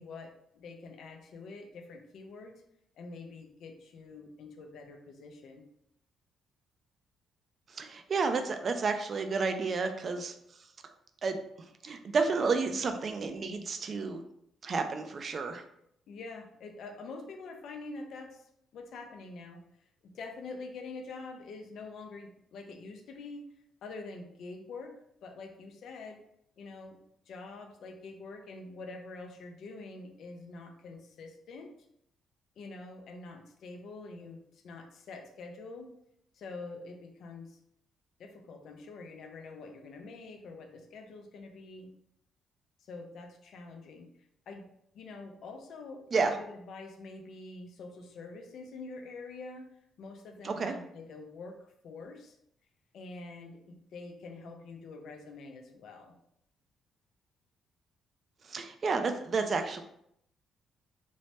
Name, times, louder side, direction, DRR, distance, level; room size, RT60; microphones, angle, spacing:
voice 1, 0.0-2.6 3.0-5.7 16.1-23.5 23.8-26.2 26.6-27.0 27.3-31.7 32.6-35.9 36.3-37.6 38.2-41.9 42.8-44.1 44.5-44.6 44.9-52.4 52.9-56.1, left 3 dB, 70° left, 4 dB, 0.4 m, -46 dB
voice 2, 7.8-10.3 11.2-11.4 11.8-14.2 14.6-15.6 46.1-46.3 50.4-50.7 58.5-59.8, right 4 dB, 45° right, 7 dB, 0.3 m, -31 dB
3.1 x 2.0 x 2.8 m, 0.74 s
cardioid pair, 90°, 0 cm